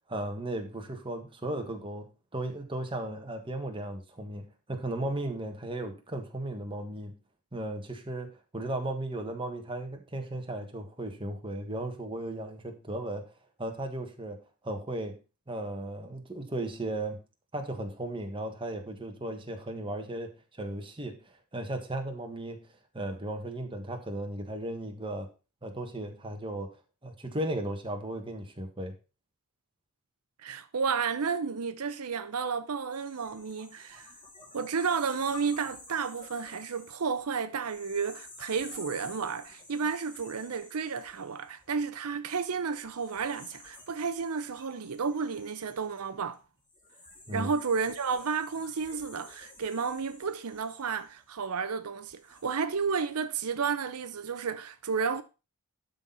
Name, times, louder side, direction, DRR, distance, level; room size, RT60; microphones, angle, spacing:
voice 1, 0.1-7.2 7.5-13.3 13.6-14.4 14.6-15.2 15.5-17.2 17.5-22.7 22.9-25.3 25.6-28.9 47.3-47.5, right 1 dB, 25° right, 1.5 m, -36 dB
voice 2, 30.4-34.1 34.5-46.4 47.3-55.2, right 5 dB, 80° right, 0.7 m, -32 dB
sound 1, 32.9-42.1 42.8-51.5 52.0-52.5, left 2 dB, 20° left, 2.7 m, -51 dB
12.0 x 4.2 x 5.5 m
head